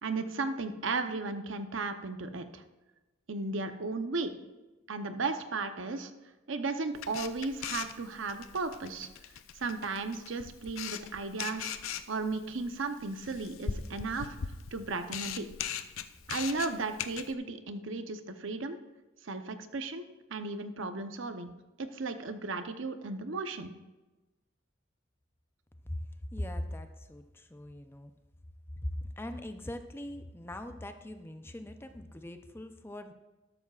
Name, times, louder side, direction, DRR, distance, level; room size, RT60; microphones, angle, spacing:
voice 1, 0.0-2.6 3.3-4.3 4.9-6.1 6.5-9.1 9.5-11.7 12.1-14.4 14.7-15.5 16.3-18.8 19.2-20.0 20.3-21.5 21.8-23.7, right 3 dB, 70° right, 8 dB, 0.8 m, -35 dB
Camera, 6.9-17.3, left 8 dB, 90° left, 0.5 m, -40 dB
voice 2, 26.3-28.1 28.8-33.1, left 1 dB, 10° left, 8 dB, 0.5 m, -40 dB
13.0 x 12.0 x 2.4 m, 1.1 s
head